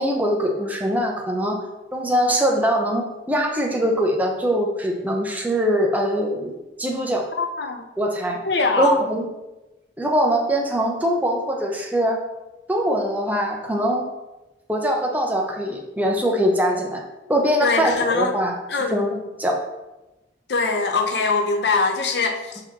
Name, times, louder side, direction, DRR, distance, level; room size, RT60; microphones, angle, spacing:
voice 1, 0.0-1.6 1.9-7.3 8.0-8.4 8.8-9.3 10.0-12.2 12.7-14.1 14.7-17.0 17.3-18.6 18.9-19.6, equal, 10° right, 0 dB, 0.8 m, -22 dB
voice 2, 7.4-7.8 8.4-9.0 17.6-18.3 18.7-19.0 20.5-22.6, left 4 dB, 65° left, 5 dB, 0.7 m, -22 dB
5.7 x 3.9 x 4.6 m, 1.0 s
head